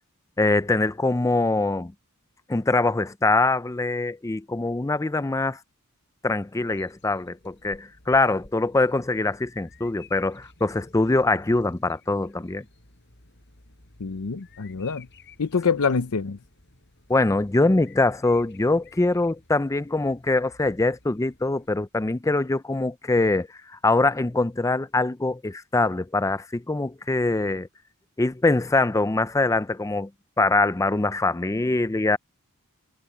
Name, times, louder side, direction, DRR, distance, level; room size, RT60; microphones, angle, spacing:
voice 1, 0.4-1.9 2.5-5.6 6.2-12.6 17.1-27.7 28.2-30.1 30.4-32.2, left 2 dB, 15° left, 0.4 m, -23 dB
Bird vocalization bird call bird song, 6.6-21.7, left 3 dB, 55° left, 5.2 m, -54 dB
voice 2, 14.0-15.1 15.4-16.4, left 5 dB, 75° left, 0.7 m, -25 dB
head